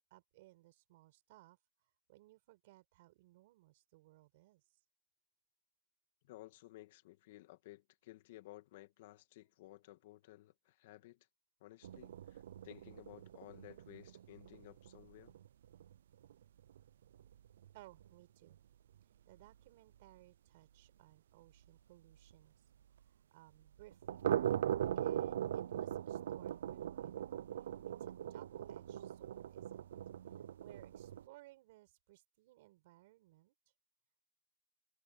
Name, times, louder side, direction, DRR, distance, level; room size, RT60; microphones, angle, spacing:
voice 1, 0.1-4.8 17.7-18.6 19.0-22.6 23.0-24.2 24.9-29.9 30.2-33.5, right 18 dB, 55° right, 4.8 m, -62 dB
voice 2, 6.2-11.3 11.6-15.4, left 17 dB, 60° left, 2.2 m, -56 dB
sound 1, 11.8-17.7 18.0-18.1 18.5-18.6 19.0-19.1 19.4-19.5 22.3-22.4 23.9-31.2, right 10 dB, 85° right, 0.4 m, -40 dB
supercardioid pair, 160°, 0 cm